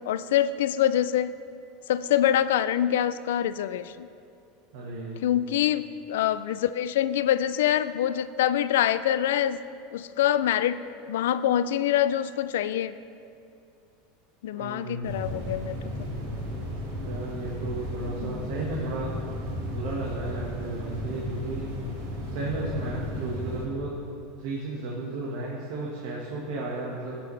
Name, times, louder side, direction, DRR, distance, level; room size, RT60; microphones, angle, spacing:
voice 1, 0.0-1.4 1.9-4.1 5.2-9.6 9.9-10.8 11.1-12.9 14.4-15.8 18.2-18.4, left 11 dB, 90° left, 14 dB, 0.3 m, -25 dB
voice 2, 4.7-5.4 14.5-15.4 17.0-19.2 19.7-21.7 22.3-23.9 24.4-27.3, right 2 dB, 70° right, -4 dB, 1.6 m, -34 dB
sound 1, 15.0-23.7, equal, 90° right, 2.2 m, -34 dB
16.0 x 6.8 x 3.3 m, 2.5 s
supercardioid pair, 145°, 0 cm